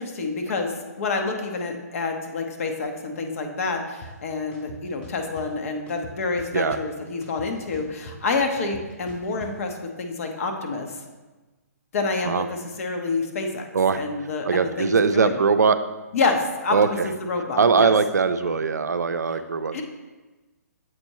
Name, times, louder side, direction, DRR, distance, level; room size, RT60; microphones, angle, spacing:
voice 1, 0.0-11.0 11.9-13.7 13.9-15.4 16.1-17.9 19.7-19.8, left 3 dB, 55° left, 4 dB, 0.9 m, -28 dB
sound 1, 4.0-4.1 4.5-5.5 5.9-6.9 7.2-9.5, equal, 15° left, 0.7 m, -43 dB
voice 2, 14.4-15.8 16.7-17.1 17.6-19.8, right 5 dB, 85° right, 10 dB, 0.4 m, -21 dB
7.7 x 4.4 x 3.0 m, 1.2 s
hypercardioid pair, 135°, 9 cm